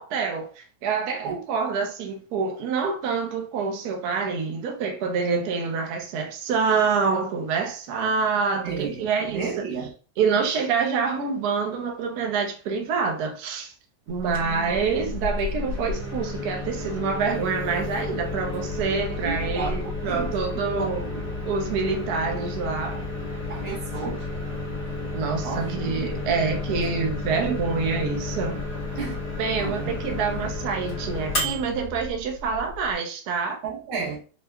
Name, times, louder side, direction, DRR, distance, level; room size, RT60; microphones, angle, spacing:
voice 1, 0.0-9.6 10.2-13.7 14.1-21.1 21.4-23.1 25.1-28.6 29.4-33.6, right 5 dB, 65° right, 1.0 m, -26 dB
voice 2, 8.6-9.9 19.2-20.3 20.7-21.2 23.5-24.2 25.4-26.4 29.0-29.2 29.6-30.1 33.6-34.2, right 5 dB, 85° right, 2.1 m, -33 dB
Microwave oven, 14.1-32.9, left 2 dB, 40° left, 1.4 m, -32 dB
4.6 x 2.2 x 2.2 m
omnidirectional pair, 2.2 m